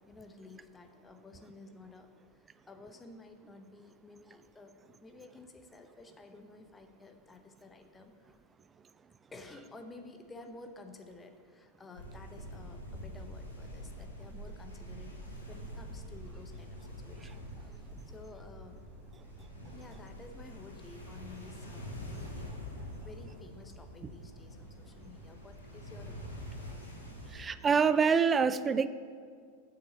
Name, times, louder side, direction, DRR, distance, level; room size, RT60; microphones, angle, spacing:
voice 1, 0.0-2.1 2.4-8.4 9.3-18.8 19.7-26.5, left 3 dB, 15° left, 6 dB, 0.8 m, -53 dB
sound 1, 11.9-27.4, equal, 80° left, 1.8 m, -45 dB
voice 2, 27.3-28.9, right 6 dB, 20° right, 14 dB, 0.3 m, -26 dB
7.1 x 6.8 x 8.0 m, 2.1 s
figure-of-eight pair, 90°, 0 cm